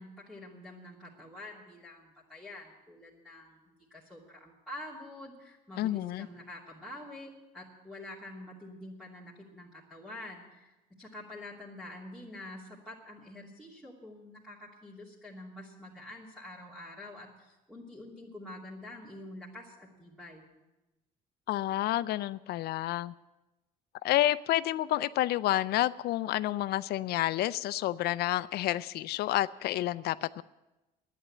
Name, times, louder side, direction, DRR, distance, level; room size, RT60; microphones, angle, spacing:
voice 1, 0.0-20.4, left 1 dB, 5° right, -6 dB, 2.8 m, -47 dB
voice 2, 5.8-6.3 21.5-23.1 24.0-30.4, left 14 dB, 70° left, 16 dB, 0.5 m, -29 dB
11.0 x 9.5 x 9.2 m, 1.0 s
cardioid pair, 110°, 17 cm